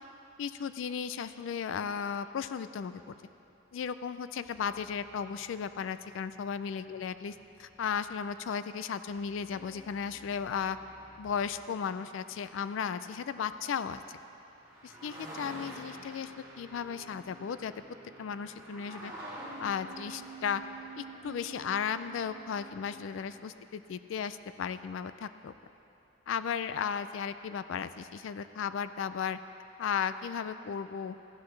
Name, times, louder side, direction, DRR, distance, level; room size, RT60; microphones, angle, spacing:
voice 1, 0.4-3.1 3.7-7.3 7.6-10.8 11.2-14.2 14.8-17.7 18.2-19.1 19.6-20.6 21.0-25.5 26.3-29.4 29.8-31.2, left 7 dB, 65° left, 13 dB, 0.3 m, -35 dB
sound 1, 3.9-4.0 4.4-8.5 9.1-11.5, right 1 dB, 45° right, 2.4 m, -63 dB
sound 2, 9.5-13.6 14.2-14.3 14.4-23.5, right 1 dB, 20° right, 2.0 m, -48 dB
14.5 x 12.0 x 3.2 m, 2.9 s
head